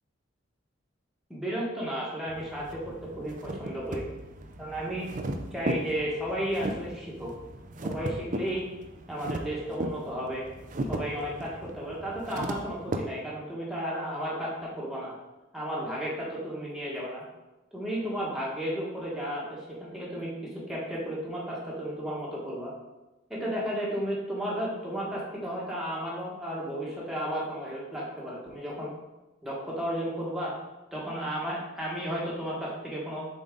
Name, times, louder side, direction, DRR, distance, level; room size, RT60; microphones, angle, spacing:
voice 1, 1.3-4.1 4.6-7.3 7.8-8.6 9.1-10.5 10.9-15.1 15.5-17.2 17.7-20.3 20.7-22.7 23.3-28.9 29.4-30.5 30.9-33.3, equal, ahead, -6 dB, 1.4 m, -33 dB
sound 1, 2.3-13.0, right 1 dB, 40° right, 0.5 m, -37 dB
7.1 x 4.0 x 3.8 m, 1.0 s
head